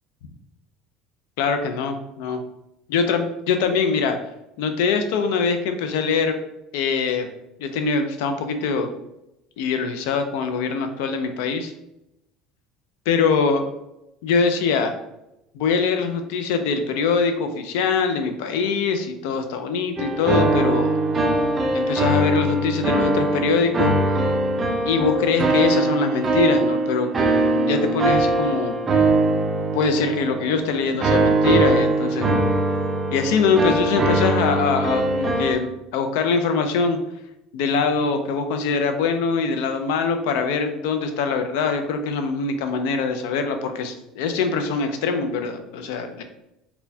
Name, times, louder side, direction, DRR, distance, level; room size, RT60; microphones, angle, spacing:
voice 1, 1.4-2.4 2.9-4.2 4.6-6.4 6.7-7.3 7.6-9.0 9.6-11.7 13.1-13.7 14.2-14.9 15.5-21.0 21.7-23.9 24.9-27.1 27.5-28.8 29.7-32.3 33.1-37.0 37.5-46.2, left 5 dB, 85° left, 7 dB, 0.4 m, -23 dB
sound 1, 20.0-35.5, right 2 dB, 20° right, 0.3 m, -21 dB
4.2 x 2.2 x 2.7 m, 0.87 s
cardioid pair, 165°, 0 cm